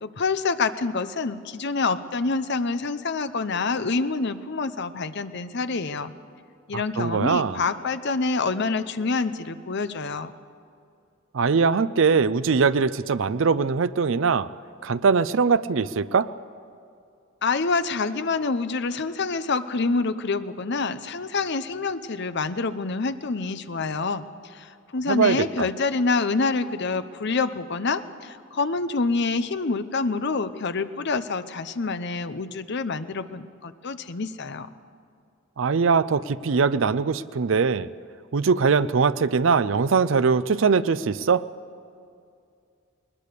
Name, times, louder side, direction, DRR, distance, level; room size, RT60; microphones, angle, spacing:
voice 1, 0.0-6.1 6.7-10.3 17.4-34.7, left 4 dB, 55° left, 11 dB, 0.8 m, -27 dB
voice 2, 6.7-7.6 11.3-14.5 14.8-16.3 25.1-25.7 35.6-37.9 38.3-41.4, right 5 dB, 65° right, 14 dB, 0.5 m, -21 dB
20.5 x 20.0 x 6.8 m, 2.4 s
head